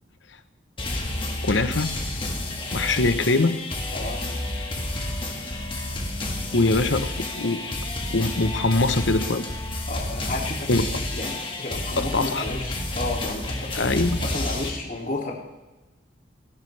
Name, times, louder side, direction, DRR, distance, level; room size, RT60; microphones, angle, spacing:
sound 1, 0.8-14.7, left 1 dB, 30° left, 1.9 m, -30 dB
voice 1, 1.4-1.9 2.7-3.6 6.5-7.6 8.1-9.5 10.7-10.9 12.0-12.5 13.7-14.2, left 2 dB, 80° left, 10 dB, 1.0 m, -22 dB
voice 2, 3.9-4.3 9.9-10.7 11.1-14.0 14.2-15.3, left 2 dB, 45° left, -1 dB, 2.8 m, -32 dB
27.0 x 11.0 x 3.4 m, 1.1 s
head